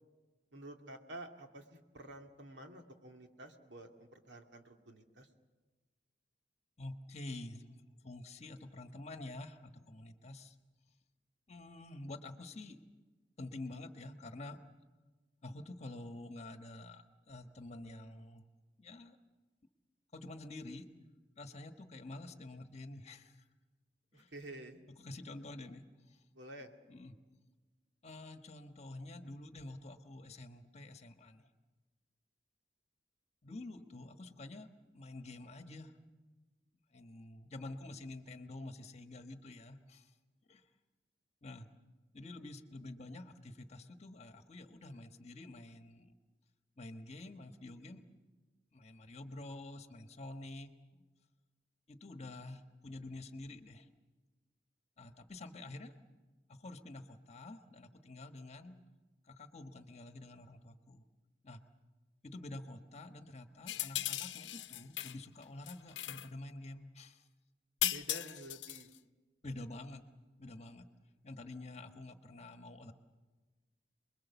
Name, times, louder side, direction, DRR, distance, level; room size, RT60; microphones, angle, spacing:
voice 1, 0.5-5.3 24.1-24.8 26.3-26.7 67.9-68.9, right 1 dB, 85° right, 4 dB, 2.3 m, -50 dB
voice 2, 6.8-7.6 8.0-10.5 11.5-12.8 13.4-14.6 15.4-18.4 18.8-19.2 20.1-20.9 21.4-23.4 24.1-24.3 25.0-25.8 26.1-26.2 26.9-27.2 28.0-31.4 33.4-34.7 34.9-35.9 36.9-40.1 40.5-40.6 41.4-41.7 42.1-46.1 46.8-48.0 48.7-51.0 51.9-53.9 55.0-55.9 56.5-58.8 59.3-61.0 61.4-61.6 62.2-67.2 69.4-70.0 70.4-70.9 71.2-72.9, left 2 dB, 40° left, 7 dB, 1.4 m, -48 dB
sound 1, 63.7-65.2 65.4-66.3 67.8-68.9, left 14 dB, 90° left, 0.7 m, -37 dB
28.5 x 21.5 x 7.1 m, 1.3 s
head